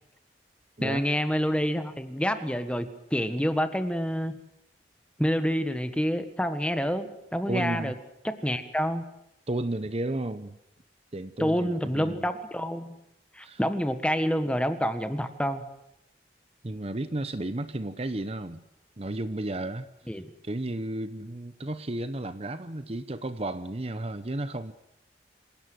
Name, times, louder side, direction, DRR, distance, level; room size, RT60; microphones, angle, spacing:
voice 1, 0.8-4.3 5.2-7.9 8.2-9.0 11.4-12.9 13.3-15.6 20.1-20.3, equal, 5° left, 9 dB, 1.6 m, -28 dB
voice 2, 7.5-8.0 9.5-10.6 11.1-12.3 13.4-13.6 16.6-18.6 19.0-19.9 20.4-24.7, right 1 dB, 35° right, 12 dB, 0.9 m, -33 dB
26.5 x 17.5 x 7.9 m, 0.81 s
head